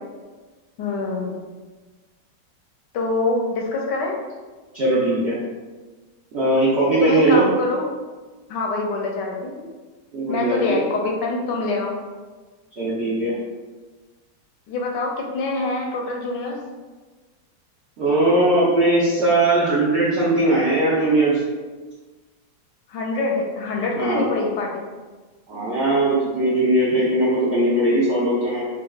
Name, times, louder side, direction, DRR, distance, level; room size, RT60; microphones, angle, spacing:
voice 1, 0.8-1.4 2.9-4.2 7.0-7.9 8.5-9.7 10.3-12.0 14.7-16.6 22.9-24.7, left 3 dB, 75° left, 0 dB, 1.1 m, -25 dB
voice 2, 4.7-5.4 6.3-7.4 10.1-10.8 12.8-13.3 18.0-21.4 24.0-24.3 25.5-28.6, right 1 dB, 90° right, -7 dB, 0.5 m, -19 dB
5.2 x 2.2 x 2.3 m, 1.3 s
omnidirectional pair, 2.1 m